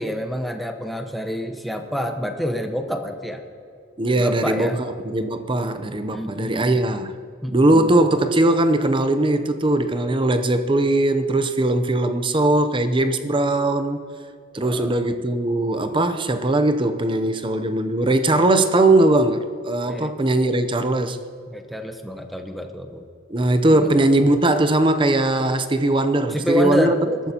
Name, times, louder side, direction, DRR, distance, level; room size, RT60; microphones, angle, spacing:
voice 1, 0.0-3.4 4.1-4.8 6.1-6.8 7.4-7.9 14.5-14.9 19.9-20.1 21.5-23.0 23.7-24.0 26.3-27.2, left 1 dB, ahead, 0.9 m, -27 dB
voice 2, 4.0-4.7 5.0-7.1 7.5-14.0 14.5-21.2 23.3-27.0, right 2 dB, 25° right, 0.6 m, -20 dB
21.0 x 13.5 x 2.9 m
head